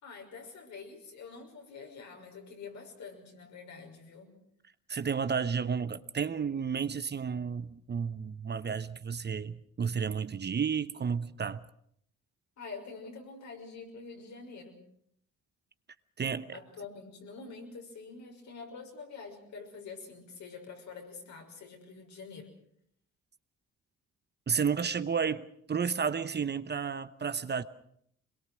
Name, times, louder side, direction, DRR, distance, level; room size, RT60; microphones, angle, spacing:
voice 1, 0.0-4.4 12.6-14.8 16.5-22.5, left 4 dB, 65° left, 6.0 m, -46 dB
voice 2, 4.9-11.6 16.2-16.6 24.5-27.6, right 6 dB, 35° right, 0.9 m, -32 dB
23.5 x 22.0 x 6.3 m
cardioid pair, 90°, 30 cm